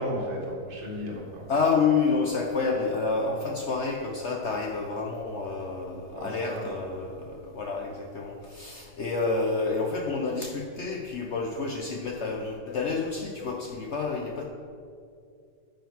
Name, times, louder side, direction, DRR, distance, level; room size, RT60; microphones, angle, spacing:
voice 1, 0.0-1.5 6.1-6.7, equal, 85° right, -2 dB, 2.4 m, -34 dB
voice 2, 1.5-14.5, left 4 dB, 60° left, 1 dB, 0.7 m, -29 dB
9.8 x 5.2 x 5.9 m, 2.3 s
omnidirectional pair, 1.9 m